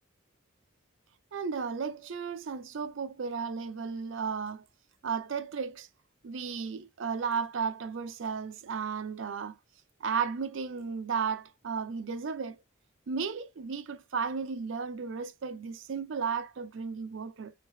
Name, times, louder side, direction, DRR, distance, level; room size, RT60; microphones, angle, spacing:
voice 1, 1.3-4.6 5.0-5.9 6.2-9.6 10.0-12.6 13.1-17.5, right 5 dB, 65° right, 0.5 m, -34 dB
2.9 x 2.7 x 3.2 m
head